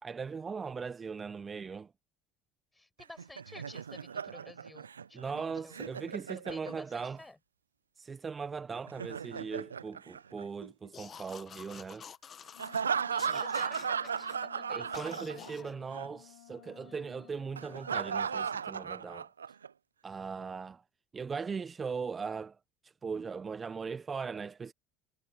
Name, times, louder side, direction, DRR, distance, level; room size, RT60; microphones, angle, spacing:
voice 1, 0.0-1.9 5.1-7.2 8.0-12.1 14.7-19.3 20.0-20.8 21.1-22.6 22.8-24.7, right 5 dB, 30° right, 1.1 m, -39 dB
voice 2, 2.7-5.8 6.3-7.4 13.1-14.9 15.3-15.8 16.8-17.4, left 2 dB, 10° left, 6.8 m, -52 dB
Laughter, 3.0-7.1 8.7-10.9 12.6-15.7 15.9-16.1 17.6-19.7, right 7 dB, 85° right, 0.4 m, -36 dB
sound 1, 10.9-12.8 13.2-14.4 14.9-15.7, left 8 dB, 40° left, 1.9 m, -49 dB
Wind instrument woodwind instrument, 12.5-18.5, left 16 dB, 75° left, 1.5 m, -56 dB
hypercardioid pair, 65°, 0 cm